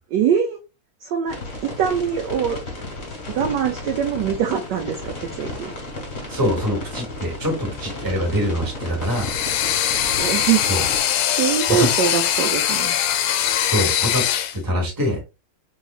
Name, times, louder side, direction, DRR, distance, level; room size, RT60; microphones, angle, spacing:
voice 1, 0.1-0.6 1.0-1.4 1.6-2.6 3.3-5.7 10.2-10.6 11.4-12.9, right 8 dB, 75° right, 4 dB, 1.0 m, -23 dB
sound 1, 1.3-11.0, left 2 dB, 45° left, 1.5 m, -33 dB
voice 2, 6.3-9.3 10.7-10.8 11.7-11.9 13.6-14.2 14.6-15.2, equal, 15° right, 0 dB, 1.0 m, -24 dB
sound 2, 9.0-14.6, left 10 dB, 80° left, 1.3 m, -22 dB
3.6 x 3.1 x 2.4 m, 0.27 s
omnidirectional pair, 2.3 m